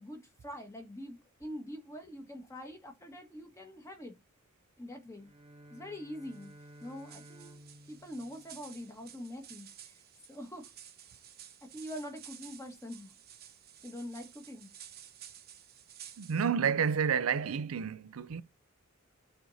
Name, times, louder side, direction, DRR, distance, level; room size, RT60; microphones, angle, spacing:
voice 1, 0.0-4.2 4.8-5.3 5.7-6.5 6.8-7.6 7.9-10.0 10.3-10.7 11.1-11.2 11.6-13.1 13.8-14.7, equal, 15° left, 1.5 m, -44 dB
Bowed string instrument, 5.1-9.3, equal, 25° right, 0.7 m, -55 dB
sound 1, 6.3-16.4, right 10 dB, 50° right, 1.0 m, -53 dB
voice 2, 16.2-18.4, right 7 dB, 75° right, 0.5 m, -30 dB
12.5 x 4.5 x 2.7 m
head